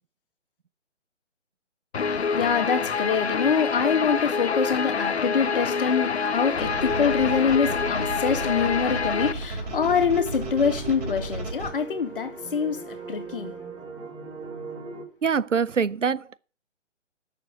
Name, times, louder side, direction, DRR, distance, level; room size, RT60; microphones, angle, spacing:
Guitar, 1.9-9.3, left 5 dB, 60° left, 0.8 m, -26 dB
voice 1, 2.0-13.5, left 6 dB, 45° left, 1.8 m, -25 dB
sound 1, 6.6-11.7, right 3 dB, 30° right, 2.7 m, -33 dB
sound 2, 9.7-15.0, right 4 dB, 10° right, 1.6 m, -38 dB
voice 2, 15.2-16.4, right 6 dB, 85° right, 0.7 m, -24 dB
9.7 x 6.8 x 8.7 m
figure-of-eight pair, 140°, 36 cm